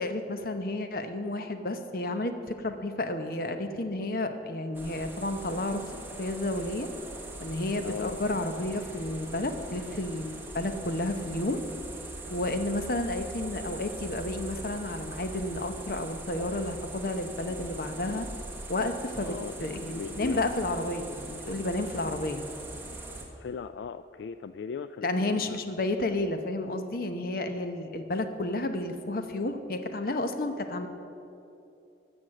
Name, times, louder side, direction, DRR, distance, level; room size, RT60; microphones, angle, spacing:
voice 1, 0.0-5.8 6.2-6.9 7.4-11.6 12.3-18.3 18.7-19.3 19.6-22.5 25.0-30.9, left 2 dB, 55° left, 7 dB, 0.9 m, -31 dB
sound 1, 4.7-23.3, right 2 dB, 15° right, 1.3 m, -42 dB
voice 2, 7.8-8.2 19.2-20.4 23.4-25.6, left 6 dB, 80° left, 11 dB, 0.3 m, -39 dB
13.5 x 6.4 x 7.6 m, 2.7 s
head